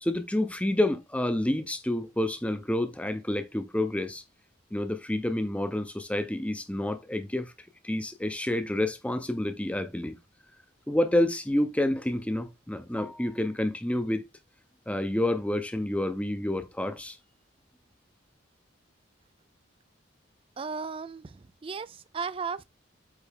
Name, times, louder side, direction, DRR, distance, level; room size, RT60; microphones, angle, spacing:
voice 1, 0.0-4.2 4.7-7.5 7.8-10.1 10.9-14.2 14.9-17.2, left 1 dB, 5° left, 0.7 m, -28 dB
voice 2, 20.6-22.6, right 5 dB, 30° right, 0.3 m, -35 dB
8.3 x 3.4 x 3.5 m
head